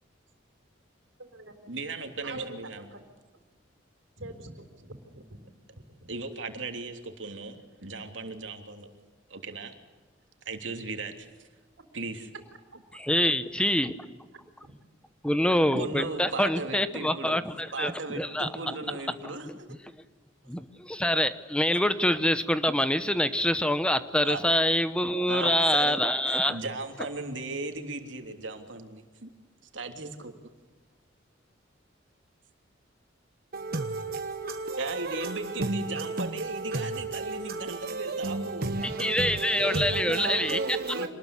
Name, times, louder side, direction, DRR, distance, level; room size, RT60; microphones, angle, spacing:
voice 1, 1.6-3.0 6.1-8.9 9.3-9.8 10.4-11.5 11.9-12.3 15.7-17.4 17.7-19.7 24.2-24.4 25.3-26.0 26.2-29.3 29.7-30.3 34.8-38.7 39.6-41.1, right 3 dB, 70° right, 3.2 m, -37 dB
voice 2, 4.2-5.4 5.7-5.8 14.6-14.7 41.0-41.1, right 2 dB, 90° right, 4.2 m, -43 dB
voice 3, 12.9-14.2 15.2-18.7 20.5-26.6 38.8-40.6, left 1 dB, 5° left, 0.9 m, -26 dB
voice 4, 33.5-41.1, right 3 dB, 50° right, 1.2 m, -33 dB
27.0 x 20.5 x 8.3 m
head